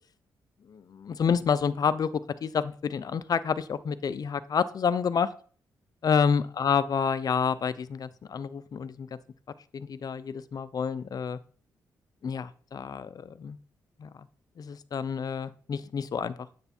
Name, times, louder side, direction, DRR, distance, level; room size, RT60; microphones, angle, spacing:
voice 1, 0.7-5.3 6.0-9.2 9.7-11.4 12.2-13.6 14.0-14.1 14.6-16.4, left 6 dB, 55° left, 15 dB, 0.7 m, -29 dB
9.5 x 8.1 x 4.5 m, 0.43 s
cardioid pair, 80°, 8 cm